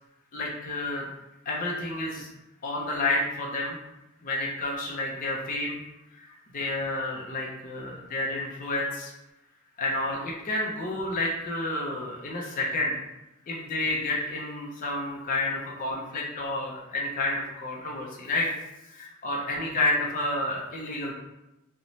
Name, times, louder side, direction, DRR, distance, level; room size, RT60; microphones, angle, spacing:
voice 1, 0.3-1.1 1.5-2.3 2.6-3.8 4.2-5.8 6.1-9.1 9.8-13.0 13.5-18.5 18.8-21.1, left 2 dB, 40° left, -2 dB, 0.4 m, -30 dB
2.6 x 2.0 x 2.9 m, 0.94 s
head